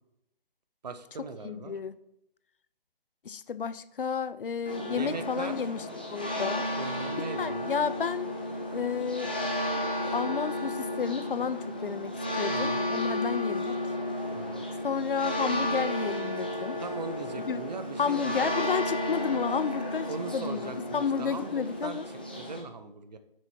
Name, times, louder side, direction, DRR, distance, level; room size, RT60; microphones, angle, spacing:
voice 1, 0.8-1.7 4.9-5.6 6.8-7.7 12.5-12.9 14.3-14.7 16.8-18.5 20.1-22.0 22.4-23.2, right 4 dB, 45° right, 10 dB, 0.8 m, -40 dB
voice 2, 1.4-2.0 3.2-5.9 6.1-6.7 7.4-8.3 8.7-9.3 10.1-13.8 14.8-16.8 17.5-17.6 18.0-22.1, left 6 dB, 65° left, 15 dB, 0.5 m, -31 dB
sound 1, 4.6-22.6, left 1 dB, 10° left, 0.4 m, -33 dB
7.3 x 6.3 x 4.5 m, 0.83 s
figure-of-eight pair, 150°, 29 cm